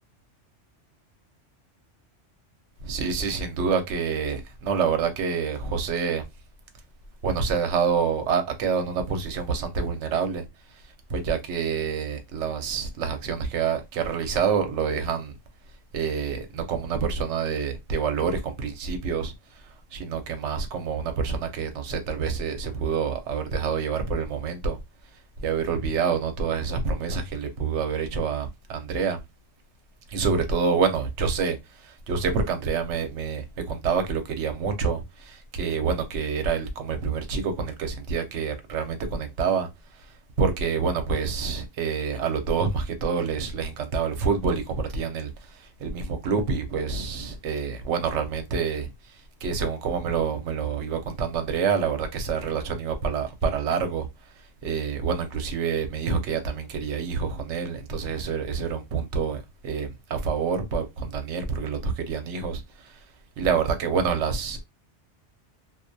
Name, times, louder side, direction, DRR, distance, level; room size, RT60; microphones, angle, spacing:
voice 1, 2.8-6.2 7.2-10.4 11.1-15.3 15.9-19.3 19.6-24.8 25.4-29.2 30.1-39.7 40.4-48.9 49.4-54.1 54.6-63.0 63.4-64.6, right 6 dB, 75° right, 0.9 m, -27 dB
2.3 x 2.1 x 2.6 m
omnidirectional pair, 1.3 m